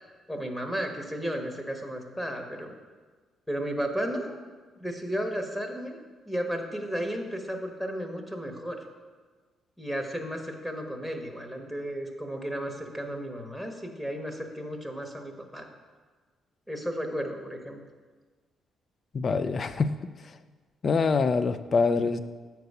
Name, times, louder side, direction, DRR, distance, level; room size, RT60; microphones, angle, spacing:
voice 1, 0.3-2.7 3.5-4.3 4.8-8.8 9.8-15.7 16.7-17.8, equal, 5° left, 3 dB, 1.1 m, -33 dB
voice 2, 19.1-19.9 20.8-22.2, left 4 dB, 45° left, 12 dB, 0.4 m, -24 dB
7.9 x 4.6 x 5.4 m, 1.4 s
cardioid pair, 90°, 0 cm